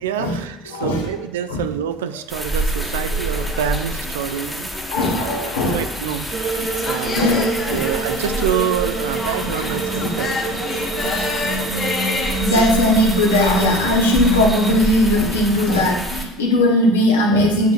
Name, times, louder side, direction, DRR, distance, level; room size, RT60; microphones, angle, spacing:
voice 1, 0.0-4.7 5.2-6.3 6.8-10.4, right 9 dB, 80° right, 11 dB, 0.3 m, -26 dB
voice 2, 0.7-1.0 1.5-1.6 4.9-5.8 6.6-6.8 7.2-7.8 9.4-9.5 10.0-10.1 10.8-11.6 12.4-17.7, left 1 dB, 85° left, 0 dB, 1.0 m, -19 dB
sound 1, 2.3-16.2, right 1 dB, ahead, 1.0 m, -28 dB
sound 2, 2.8-12.7, left 3 dB, 40° left, 1.4 m, -30 dB
sound 3, 6.3-14.8, right 3 dB, 45° right, 0.8 m, -27 dB
7.9 x 5.0 x 2.4 m, 0.98 s
hypercardioid pair, 65°, 0 cm